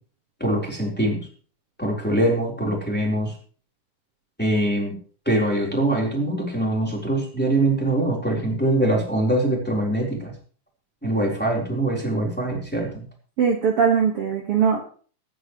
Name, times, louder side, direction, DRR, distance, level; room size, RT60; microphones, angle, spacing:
voice 1, 0.4-1.2 1.8-3.3 4.4-4.9 5.3-10.3 11.0-13.1, right 1 dB, 5° left, -2 dB, 3.5 m, -23 dB
voice 2, 13.4-14.8, right 6 dB, 55° right, 1 dB, 2.2 m, -20 dB
23.5 x 9.8 x 3.1 m, 0.43 s
omnidirectional pair, 3.7 m